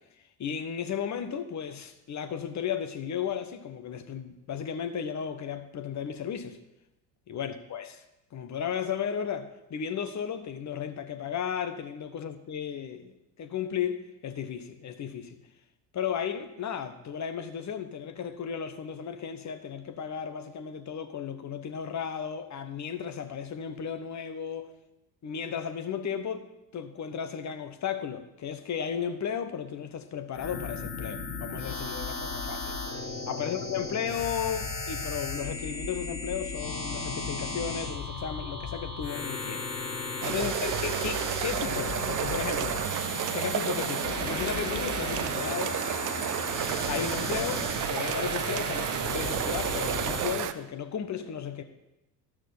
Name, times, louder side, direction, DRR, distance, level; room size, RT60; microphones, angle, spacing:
voice 1, 0.4-6.6 7.3-8.0 8.3-13.1 13.4-15.4 15.9-24.7 25.2-32.8 33.3-39.7 40.2-42.8 43.3-45.8 46.9-51.6, left 8 dB, 35° left, 1.3 m, -34 dB
sound 1, 30.3-50.3, left 3 dB, 80° left, 2.4 m, -35 dB
sound 2, 40.2-50.5, right 11 dB, 40° right, 0.7 m, -31 dB
12.5 x 6.3 x 6.9 m
figure-of-eight pair, 65°, 49 cm